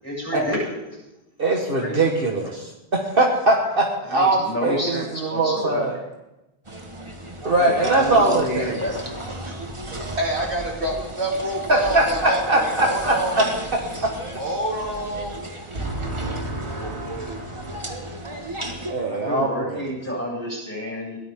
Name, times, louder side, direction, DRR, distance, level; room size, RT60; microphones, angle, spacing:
voice 1, 0.0-1.0 1.8-2.2 4.0-5.8 7.5-8.9 10.4-10.5 19.1-21.2, left 1 dB, 15° left, -4 dB, 7.7 m, -29 dB
voice 2, 1.4-6.0 7.4-8.8 11.7-13.5 14.0-14.1 18.8-19.8, right 2 dB, 55° right, 0 dB, 1.8 m, -21 dB
sound 1, 6.6-18.9, right 1 dB, 25° right, 1.7 m, -35 dB
voice 3, 8.9-13.5 14.3-15.3 15.7-18.2, right 1 dB, 80° right, -2 dB, 3.4 m, -29 dB
22.0 x 18.0 x 3.8 m, 0.96 s
omnidirectional pair, 1.1 m